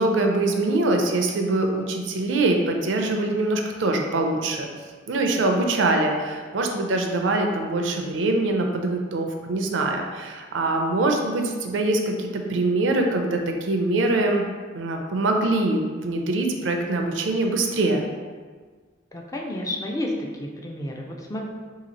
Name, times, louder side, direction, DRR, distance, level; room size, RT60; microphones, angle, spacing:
voice 1, 0.0-4.7 5.1-14.5 14.7-18.0, right 2 dB, 70° right, 3 dB, 0.5 m, -23 dB
voice 2, 19.1-21.4, left 1 dB, 15° left, -1 dB, 0.4 m, -31 dB
2.9 x 2.8 x 4.0 m, 1.5 s
head